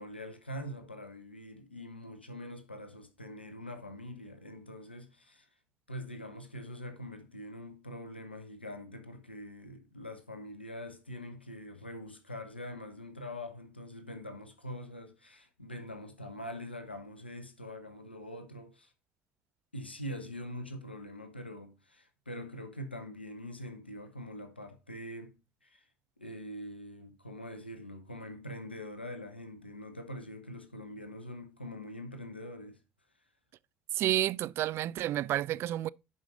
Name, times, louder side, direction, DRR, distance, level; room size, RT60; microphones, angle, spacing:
voice 1, 0.0-5.5 5.9-18.9 19.7-25.9 26.2-32.8, left 1 dB, 90° left, 0.9 m, -44 dB
voice 2, 33.9-35.9, right 13 dB, 50° right, 0.3 m, -30 dB
11.0 x 5.0 x 3.9 m
figure-of-eight pair, 55°, 5 cm